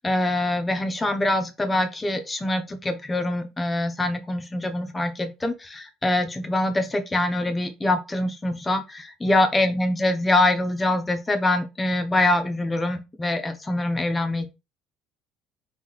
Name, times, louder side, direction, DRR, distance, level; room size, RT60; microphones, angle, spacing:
voice 1, 0.0-14.5, left 1 dB, 15° left, 0.8 m, -24 dB
3.4 x 3.3 x 4.0 m
cardioid pair, 125°, 0 cm